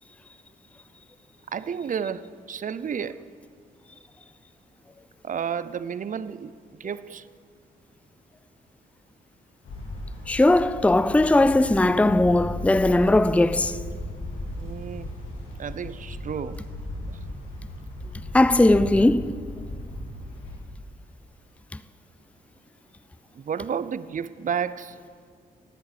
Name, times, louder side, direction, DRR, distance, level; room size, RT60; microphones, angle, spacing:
voice 1, 1.5-3.2 5.2-6.5 6.8-7.3 14.6-15.1 15.6-16.6 17.1-17.2 23.3-25.0, right 7 dB, 40° right, 0.5 m, -31 dB
sound 1, 9.6-20.6, left 1 dB, 80° left, 2.4 m, -36 dB
voice 2, 10.3-13.8 18.3-19.3, left 2 dB, 5° left, 0.5 m, -19 dB
11.0 x 8.6 x 8.4 m
hypercardioid pair, 45°, 20 cm